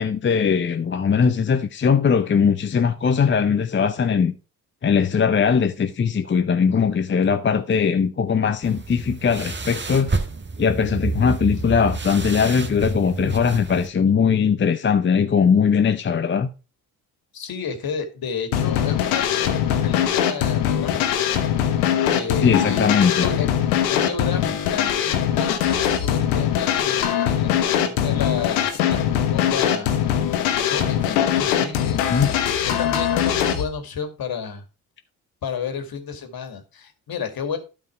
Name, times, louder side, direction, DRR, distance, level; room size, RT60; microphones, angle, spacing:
voice 1, 0.0-4.3 4.8-10.2 10.6-16.5 22.4-23.3 32.1-32.3, left 6 dB, 25° left, 0.7 m, -20 dB
sound 1, 8.6-13.9, right 3 dB, 25° right, 1.6 m, -29 dB
voice 2, 17.3-21.2 22.1-23.5 23.9-29.9 30.5-32.1 32.6-34.6 35.4-37.6, left 6 dB, 55° left, 2.3 m, -31 dB
sound 2, 18.5-33.6, left 9 dB, 80° left, 1.2 m, -21 dB
12.0 x 5.3 x 4.5 m
hypercardioid pair, 50°, 44 cm